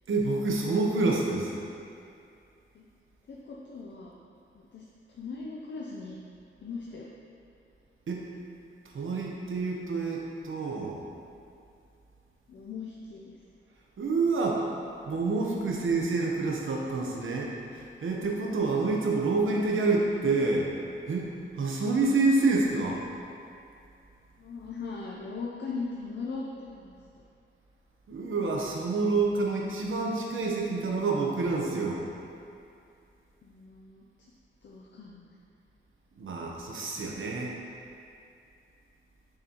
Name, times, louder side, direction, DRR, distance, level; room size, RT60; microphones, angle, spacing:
voice 1, 0.1-1.5 8.1-8.3 8.8-11.0 14.0-14.7 15.1-20.7 21.1-23.0 28.1-32.0 36.2-37.6, right 3 dB, 80° right, -1 dB, 1.0 m, -28 dB
voice 2, 3.3-4.2 4.7-6.2 6.6-7.1 12.5-13.3 24.4-27.0 33.4-34.0 34.6-35.3, left 4 dB, 65° left, -3 dB, 0.6 m, -39 dB
6.7 x 6.7 x 3.0 m, 2.5 s
wide cardioid pair, 155°, 20 cm